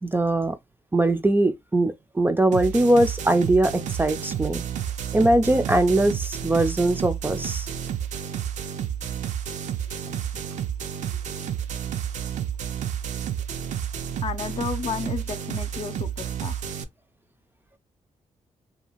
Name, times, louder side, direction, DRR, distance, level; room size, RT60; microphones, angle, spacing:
voice 1, 0.0-0.6 0.9-4.6 5.1-7.7, right 1 dB, 15° right, 0.4 m, -21 dB
sound 1, 2.5-16.8, right 9 dB, 80° right, 0.4 m, -31 dB
voice 2, 14.2-16.6, left 6 dB, 50° left, 0.5 m, -32 dB
2.6 x 2.3 x 2.9 m
cardioid pair, 85°, 13 cm